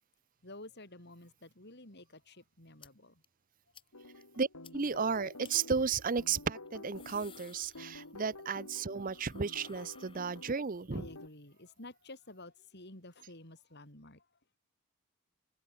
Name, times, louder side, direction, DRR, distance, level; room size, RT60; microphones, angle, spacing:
voice 1, 0.4-3.1 8.0-8.1 10.9-14.2, left 2 dB, 50° left, 4.4 m, -51 dB
sound 1, 2.8-2.9 3.2-3.3 3.7-3.9 4.2-4.3 4.6-4.7 5.4-5.5 6.7-8.3 8.6-10.8, left 7 dB, 25° left, 2.6 m, -58 dB
sound 2, 3.9-11.3, left 2 dB, 90° left, 3.8 m, -50 dB
voice 2, 4.7-11.1, right 5 dB, 40° right, 0.6 m, -34 dB
open air
head